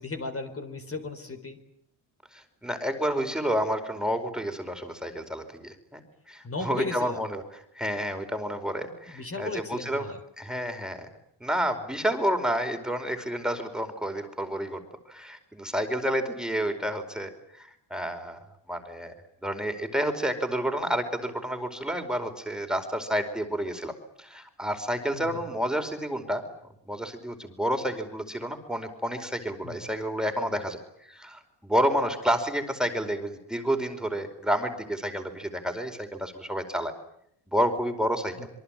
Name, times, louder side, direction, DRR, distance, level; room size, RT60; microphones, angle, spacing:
voice 1, 0.0-1.6 6.4-7.2 9.1-10.2 25.1-25.4 29.6-29.8 38.4-38.5, left 3 dB, 30° left, 6 dB, 4.2 m, -36 dB
voice 2, 2.3-6.0 6.3-11.1 11.4-14.8 15.1-19.1 19.4-26.5 26.9-36.9 37.5-38.3, equal, ahead, 6 dB, 4.8 m, -30 dB
26.5 x 23.5 x 9.0 m, 0.72 s
cardioid pair, 95°, 44 cm